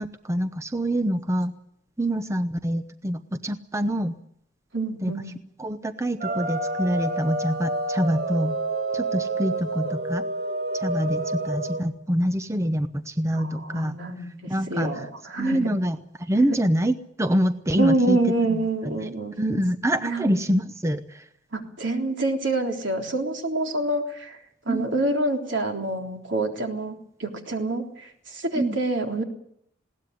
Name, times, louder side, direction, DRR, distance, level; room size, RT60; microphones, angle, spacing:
voice 1, 0.0-1.5 2.0-4.1 5.0-5.1 5.6-8.6 8.9-10.2 10.7-15.1 15.4-19.1 19.4-21.3 24.7-24.9 28.5-28.8, equal, 15° right, 10 dB, 0.8 m, -26 dB
voice 2, 4.7-5.3 13.3-15.6 17.8-19.3 20.0-20.3 21.5-24.4 24.6-29.2, right 2 dB, 70° right, 3 dB, 3.5 m, -27 dB
sound 1, 6.2-11.8, right 2 dB, 55° right, 4.5 m, -28 dB
20.5 x 17.5 x 9.4 m, 0.72 s
head